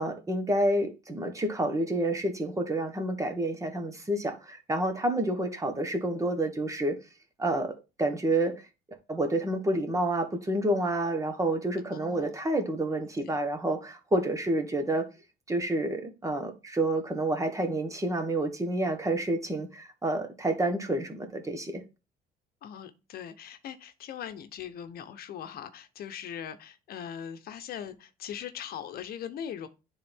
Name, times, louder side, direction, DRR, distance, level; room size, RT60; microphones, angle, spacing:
voice 1, 0.0-7.0 7.4-8.5 9.1-15.1 15.5-21.8, right 1 dB, 20° right, 1.6 m, -29 dB
voice 2, 11.8-12.3 22.6-29.7, left 9 dB, 65° left, 0.9 m, -40 dB
9.9 x 3.9 x 3.6 m
cardioid pair, 110°, 17 cm